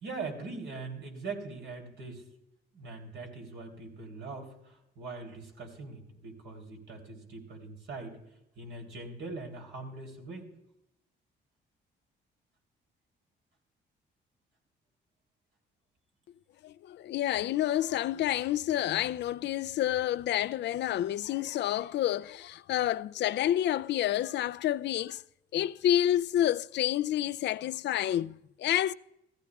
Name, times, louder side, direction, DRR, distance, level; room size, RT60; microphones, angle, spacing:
voice 1, 0.0-2.2 2.7-8.2 8.5-10.5, right 3 dB, 70° right, 3.4 m, -42 dB
voice 2, 16.6-25.2 25.5-28.9, left 12 dB, 60° left, 0.4 m, -29 dB
16.0 x 14.5 x 2.4 m
cardioid pair, 90°, 20 cm